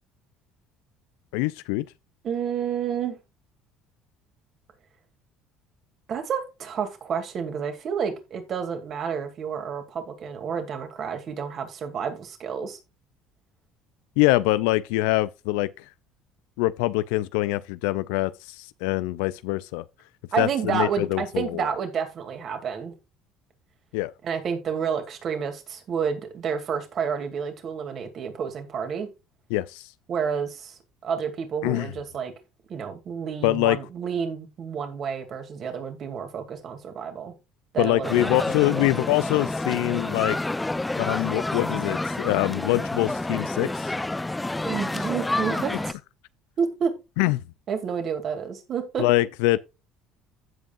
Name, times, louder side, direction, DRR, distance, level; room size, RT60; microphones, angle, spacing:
voice 1, 1.3-1.9 14.2-15.8 16.6-19.8 20.4-21.7 23.9-24.1 29.5-29.9 31.6-31.9 33.4-33.8 37.8-40.4 41.0-43.9 47.2-47.4 49.0-49.6, left 18 dB, 80° left, 0.3 m, -24 dB
voice 2, 2.2-3.2 6.1-12.8 20.3-23.0 24.2-29.1 30.1-32.3 32.7-37.3 37.7-38.9 44.6-46.0 46.6-46.9 47.7-49.0, right 7 dB, 50° right, 2.5 m, -30 dB
sound 1, 38.0-45.9, left 2 dB, 10° left, 0.4 m, -29 dB
15.5 x 5.2 x 2.5 m
supercardioid pair, 85°, 0 cm